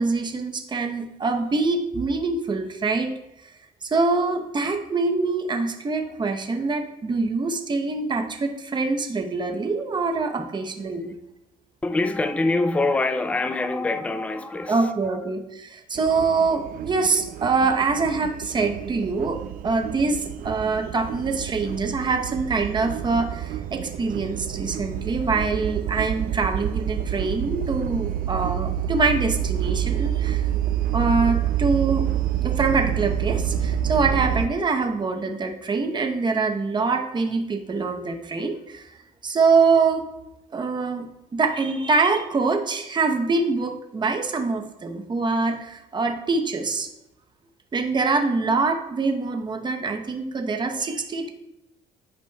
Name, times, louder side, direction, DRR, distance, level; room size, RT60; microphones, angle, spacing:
voice 1, 0.0-3.1 3.8-11.1 14.7-30.5 30.9-32.1 32.4-38.8 39.2-40.0 40.5-46.9 47.7-51.3, right 4 dB, 25° right, 0.9 m, -24 dB
voice 2, 11.8-15.3, left 2 dB, 10° left, 0.4 m, -25 dB
sound 1, 16.0-34.5, right 10 dB, 60° right, 0.4 m, -28 dB
11.5 x 5.0 x 2.3 m
cardioid pair, 110°, 17 cm